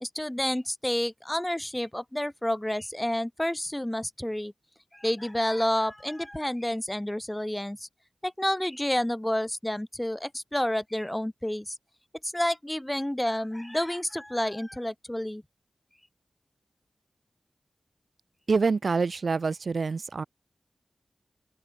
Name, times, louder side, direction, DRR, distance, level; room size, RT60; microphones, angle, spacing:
voice 1, 0.0-4.5 4.9-7.9 8.2-11.7 12.2-15.4, left 1 dB, 10° left, 1.5 m, -29 dB
voice 2, 18.5-20.2, right 4 dB, 75° right, 3.7 m, -26 dB
open air
cardioid pair, 50°, 0 cm